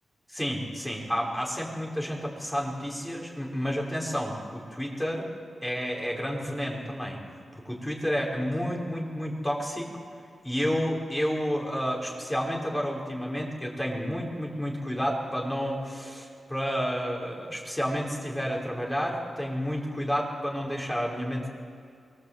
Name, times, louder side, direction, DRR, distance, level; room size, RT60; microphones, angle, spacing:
voice 1, 0.3-5.3 5.6-7.2 7.5-9.9 10.4-21.5, equal, 5° left, -2 dB, 5.4 m, -30 dB
24.0 x 18.0 x 8.4 m, 2.3 s
cardioid pair, 75°, 0 cm